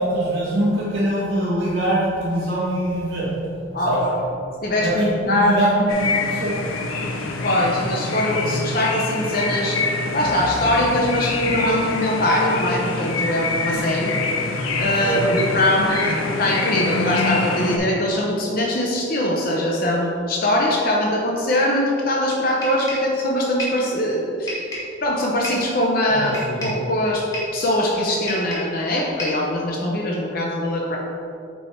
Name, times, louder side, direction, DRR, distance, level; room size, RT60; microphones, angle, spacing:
voice 1, 0.0-3.3 3.8-4.0 4.7-6.5 15.0-15.4 26.1-26.6, right 1 dB, 55° right, -10 dB, 1.5 m, -23 dB
voice 2, 4.6-5.6 7.4-9.8 10.1-14.1 14.8-24.7 25.0-26.3 26.6-27.2 27.5-31.0, left 1 dB, 45° left, -2 dB, 0.7 m, -22 dB
sound 1, 5.9-17.8, left 3 dB, 85° left, 0.7 m, -25 dB
sound 2, 22.6-23.1 23.6-23.9 24.5-24.9 25.4-25.7 26.3-26.8 27.3-27.6 28.3-28.8 29.2-29.5, left 1 dB, 15° left, 1.5 m, -30 dB
8.3 x 3.5 x 4.3 m, 2.6 s
head